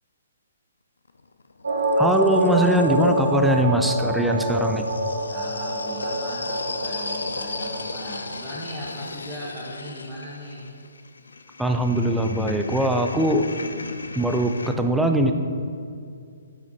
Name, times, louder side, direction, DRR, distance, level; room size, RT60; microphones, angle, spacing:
sound 1, 1.1-3.5 4.3-14.7, left 3 dB, 85° left, 0.4 m, -36 dB
sound 2, 1.6-7.9, right 1 dB, 80° right, 1.5 m, -26 dB
voice 1, 1.9-4.8 11.6-13.5 14.2-15.3, right 1 dB, 5° right, 5 dB, 0.4 m, -21 dB
voice 2, 5.3-10.7, equal, 20° right, -7 dB, 1.1 m, -37 dB
8.7 x 5.9 x 2.9 m, 2.3 s
hypercardioid pair, 140°, 0 cm